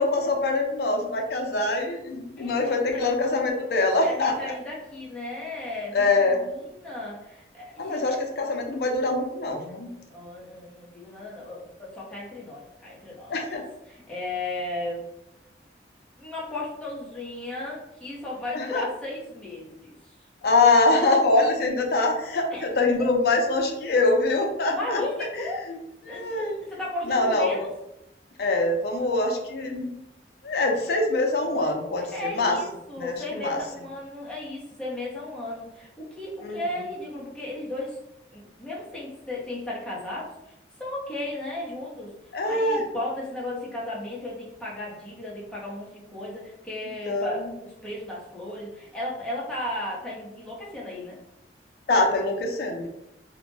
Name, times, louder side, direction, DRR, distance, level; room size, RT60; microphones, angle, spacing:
voice 1, 0.0-4.5 5.9-6.4 7.8-9.9 13.3-13.6 18.5-18.8 20.4-25.0 25.7-25.8 26.1-26.6 27.1-27.5 28.4-29.9 30.4-32.6 33.0-33.6 36.4-36.6 42.3-42.8 47.1-47.3 51.9-52.9, left 2 dB, 55° left, 2 dB, 0.4 m, -24 dB
voice 2, 2.4-3.2 4.0-8.2 10.1-13.6 13.8-15.1 16.2-20.1 22.5-22.7 23.0-23.1 24.7-25.6 26.1-27.7 32.1-38.0 38.3-40.5 40.8-42.1 42.4-51.2, left 1 dB, 5° left, -6 dB, 0.6 m, -35 dB
2.1 x 2.0 x 3.0 m, 0.86 s
head